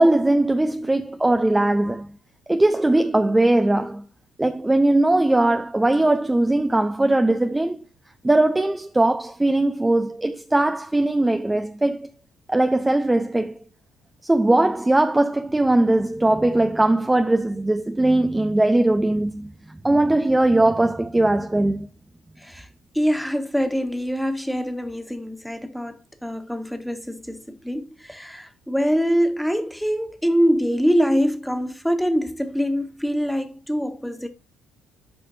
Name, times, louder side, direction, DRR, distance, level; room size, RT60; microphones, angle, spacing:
voice 1, 0.0-2.1 2.5-4.0 4.4-7.8 8.2-12.1 12.5-13.6 14.2-19.5 19.8-21.9, right 2 dB, 15° right, 0.7 m, -20 dB
voice 2, 22.9-34.3, equal, ahead, 1.7 m, -24 dB
11.5 x 5.0 x 2.6 m
hypercardioid pair, 55°, 0 cm